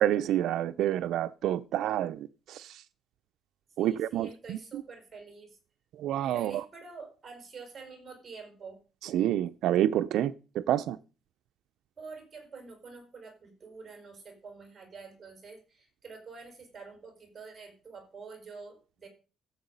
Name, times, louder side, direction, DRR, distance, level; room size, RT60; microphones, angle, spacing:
voice 1, 0.0-2.8 3.8-4.6 6.0-6.6 9.0-11.0, right 12 dB, 85° right, 0.5 m, -28 dB
voice 2, 3.8-5.6 6.3-8.8 12.0-19.1, right 4 dB, 25° right, 5.2 m, -47 dB
14.0 x 7.9 x 5.4 m
cardioid pair, 140°, 0 cm